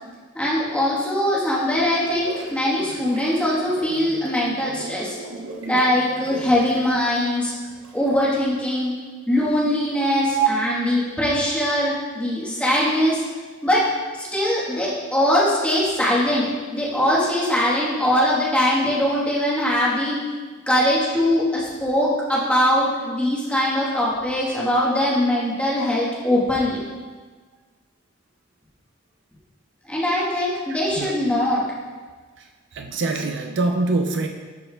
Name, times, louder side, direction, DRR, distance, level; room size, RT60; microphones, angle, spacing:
voice 1, 0.3-5.2 5.6-7.5 7.9-8.9 9.3-13.2 13.6-16.5 16.7-20.2 20.7-26.8 29.9-31.6, left 1 dB, 5° left, -7 dB, 1.2 m, -21 dB
sound 1, 1.5-8.2, right 2 dB, 75° right, 0.8 m, -39 dB
voice 2, 30.7-31.4 32.4-34.3, right 4 dB, 60° right, 4 dB, 0.4 m, -24 dB
11.5 x 4.2 x 2.3 m, 1.4 s
head